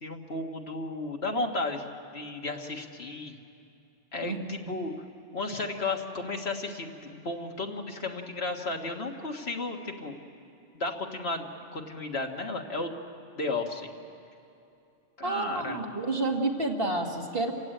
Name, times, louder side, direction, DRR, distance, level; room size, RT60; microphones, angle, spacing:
voice 1, 0.0-1.9 2.1-3.4 4.1-4.9 5.3-10.1 10.7-12.9 13.4-13.9 15.2-15.8, left 2 dB, 60° left, 2 dB, 1.8 m, -33 dB
voice 2, 15.2-17.5, right 2 dB, 55° right, 1 dB, 2.2 m, -29 dB
28.5 x 16.0 x 9.0 m, 2.6 s
omnidirectional pair, 1.2 m